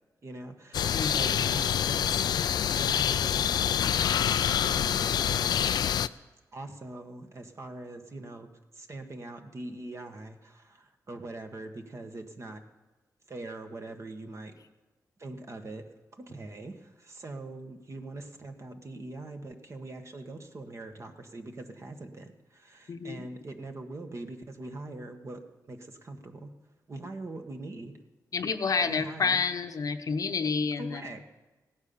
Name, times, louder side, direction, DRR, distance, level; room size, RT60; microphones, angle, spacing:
voice 1, 0.2-2.4 2.7-4.0 4.3-5.6 6.5-12.6 13.3-14.5 15.2-25.4 25.7-26.5 26.9-27.9 28.8-29.4 30.8-31.2, right 2 dB, 45° right, 5 dB, 1.5 m, -42 dB
sound 1, 0.7-6.1, left 9 dB, 90° left, 0.4 m, -26 dB
voice 2, 22.9-23.3 28.3-31.0, left 5 dB, 60° left, 8 dB, 0.9 m, -29 dB
16.5 x 9.6 x 7.0 m, 1.2 s
cardioid pair, 85°, 7 cm